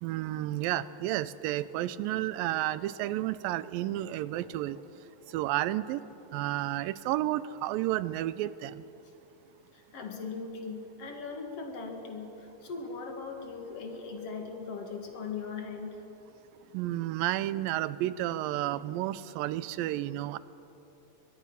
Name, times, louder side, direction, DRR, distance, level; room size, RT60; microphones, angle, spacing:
voice 1, 0.0-4.8 5.3-6.0 6.3-8.8 16.7-20.4, right 14 dB, 85° right, 16 dB, 2.4 m, -31 dB
voice 2, 9.7-16.0, left 4 dB, 50° left, 3 dB, 2.7 m, -39 dB
23.5 x 21.0 x 5.6 m, 2.9 s
omnidirectional pair, 4.0 m